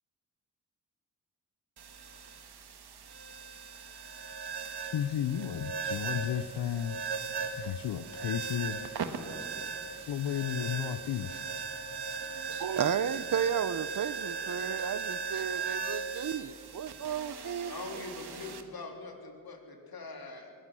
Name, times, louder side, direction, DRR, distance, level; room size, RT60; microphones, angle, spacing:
sound 1, 1.8-18.6, right 5 dB, 80° right, 1.6 m, -38 dB
voice 1, 4.9-7.0 7.6-8.8 10.1-11.5, left 10 dB, 90° left, 0.7 m, -33 dB
voice 2, 12.3-18.0, right 8 dB, 55° right, 0.8 m, -33 dB
voice 3, 17.6-20.5, left 3 dB, 65° left, 3.8 m, -43 dB
22.0 x 18.0 x 7.6 m
cardioid pair, 75°, 39 cm